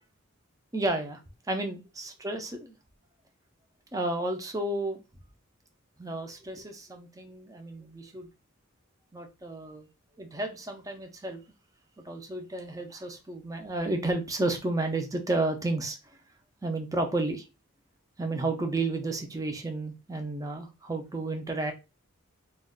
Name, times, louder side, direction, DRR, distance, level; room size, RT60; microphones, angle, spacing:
voice 1, 0.7-1.2 1.5-2.8 3.9-5.0 6.0-8.3 9.1-9.8 10.2-11.4 12.0-16.0 16.6-17.4 18.2-21.7, right 2 dB, 15° right, 5 dB, 0.5 m, -32 dB
2.4 x 2.2 x 3.7 m, 0.27 s
head